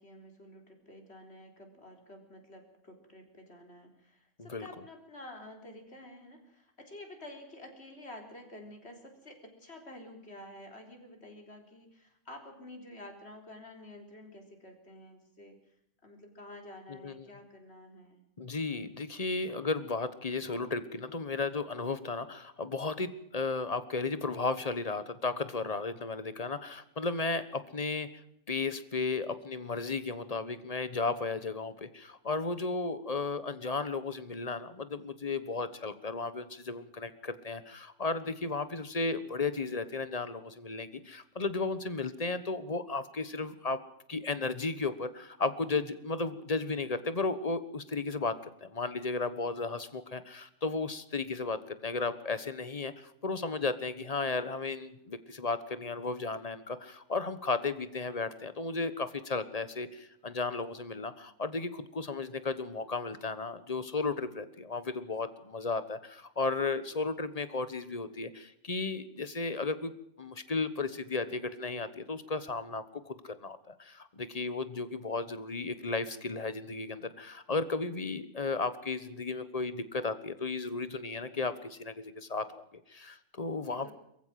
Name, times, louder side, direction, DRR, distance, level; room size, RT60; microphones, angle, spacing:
voice 1, 0.0-15.6 16.0-18.2 83.7-83.9, left 1 dB, 50° left, 3 dB, 4.0 m, -50 dB
voice 2, 16.9-17.3 18.4-28.1 28.5-43.8 44.1-48.3 48.6-69.9 70.2-83.9, left 3 dB, 30° left, 13 dB, 1.2 m, -34 dB
23.0 x 15.0 x 7.6 m, 0.76 s
omnidirectional pair, 1.4 m